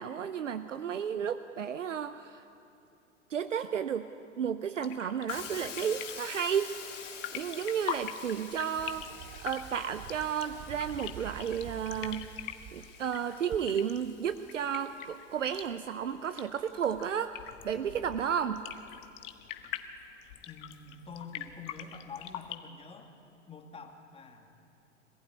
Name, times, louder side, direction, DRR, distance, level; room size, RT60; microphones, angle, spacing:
voice 1, 0.0-2.4 3.3-4.1 4.4-6.8 7.3-9.1 9.4-12.3 12.7-17.3 17.6-18.6, right 8 dB, 80° right, 11 dB, 0.8 m, -32 dB
sound 1, 4.8-22.6, left 11 dB, 45° left, 1.6 m, -44 dB
Hiss, 5.3-15.2, left 6 dB, 75° left, 3.6 m, -48 dB
sound 2, 8.8-12.9 13.5-13.6, right 10 dB, 30° right, 0.9 m, -47 dB
voice 2, 20.5-23.2 23.5-24.6, left 4 dB, 15° left, 4 dB, 2.5 m, -47 dB
25.0 x 16.0 x 9.5 m, 2.9 s
figure-of-eight pair, 100°, 37 cm